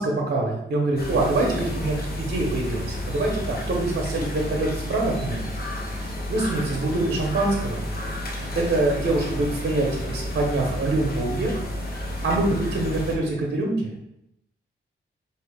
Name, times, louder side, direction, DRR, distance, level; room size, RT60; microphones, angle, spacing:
voice 1, 0.0-5.4 6.0-7.8 8.5-11.6 12.0-14.0, right 2 dB, 55° right, -1 dB, 1.0 m, -25 dB
sound 1, 1.0-13.2, left 1 dB, 45° left, 0.9 m, -31 dB
4.6 x 2.8 x 3.5 m, 0.81 s
wide cardioid pair, 130°, 21 cm